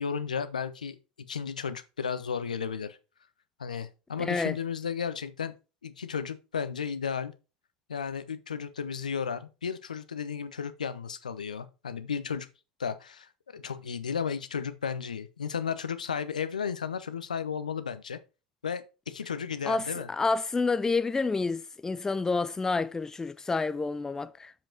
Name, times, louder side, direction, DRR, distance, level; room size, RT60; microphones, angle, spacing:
voice 1, 0.0-3.0 3.6-5.5 5.8-7.3 7.9-12.5 12.8-18.2 18.6-20.1, left 6 dB, 80° left, 0.7 m, -34 dB
voice 2, 4.2-4.6 19.7-24.5, left 3 dB, 15° left, 0.4 m, -29 dB
7.2 x 5.4 x 4.5 m
figure-of-eight pair, 75°, 4 cm